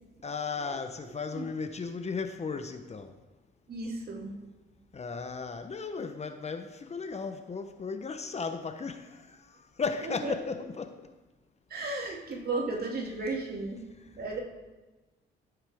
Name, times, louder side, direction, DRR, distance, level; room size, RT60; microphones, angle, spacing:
voice 1, 0.2-3.1 4.9-9.4 9.8-11.0, left 5 dB, 35° left, 0.9 m, -35 dB
voice 2, 3.7-4.4 10.0-10.3 11.7-13.9 14.2-14.4, right 3 dB, 50° right, 2.3 m, -34 dB
14.0 x 8.0 x 3.5 m
cardioid pair, 90°, 20 cm